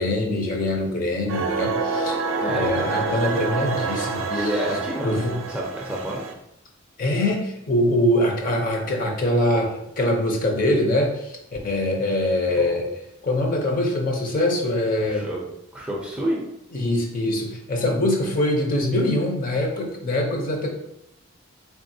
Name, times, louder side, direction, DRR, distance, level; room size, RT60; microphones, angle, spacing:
voice 1, 0.0-4.3 5.0-5.4 7.0-11.4 11.6-12.9 13.2-15.2 16.7-20.7, left 1 dB, 40° left, 1 dB, 0.6 m, -23 dB
sound 1, 1.3-6.3, right 4 dB, 65° right, 0.4 m, -27 dB
voice 2, 2.4-2.8 4.3-6.2 12.6-12.7 15.0-15.4 15.7-16.4, equal, 5° right, -3 dB, 0.5 m, -29 dB
3.5 x 3.5 x 2.6 m, 0.81 s
head